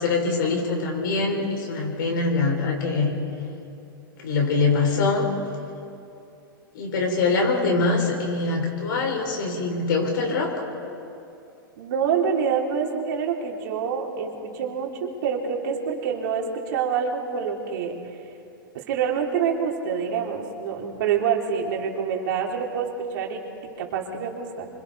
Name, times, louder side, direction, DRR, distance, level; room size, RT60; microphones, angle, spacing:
voice 1, 0.0-3.1 4.2-5.3 6.7-10.6, left 3 dB, 65° left, 0 dB, 5.6 m, -23 dB
voice 2, 1.8-2.2 11.8-17.9 18.7-24.7, right 7 dB, 60° right, 0 dB, 3.3 m, -27 dB
27.5 x 25.0 x 4.1 m, 2.7 s
hypercardioid pair, 115°, 12 cm